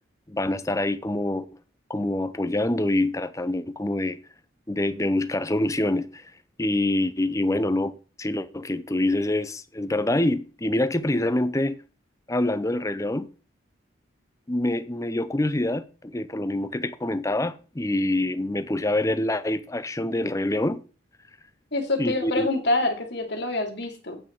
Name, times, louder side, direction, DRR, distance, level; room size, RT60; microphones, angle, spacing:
voice 1, 0.3-1.4 1.9-4.2 4.7-6.3 6.6-11.8 12.3-13.3 14.5-20.8 22.0-22.5, left 1 dB, 15° left, 0.7 m, -26 dB
voice 2, 21.7-24.2, left 2 dB, 60° left, 2.8 m, -26 dB
9.0 x 8.7 x 4.6 m
head